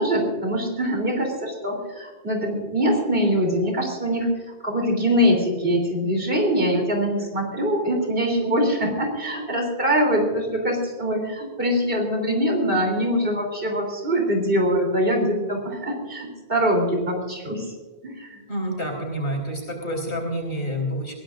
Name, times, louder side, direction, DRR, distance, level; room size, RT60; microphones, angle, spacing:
voice 1, 0.0-4.3 4.6-17.7 18.0-18.4, equal, 60° right, 2 dB, 3.8 m, -23 dB
voice 2, 18.5-21.1, equal, 65° left, 0 dB, 4.5 m, -28 dB
22.0 x 17.0 x 2.6 m, 1.3 s
omnidirectional pair, 1.1 m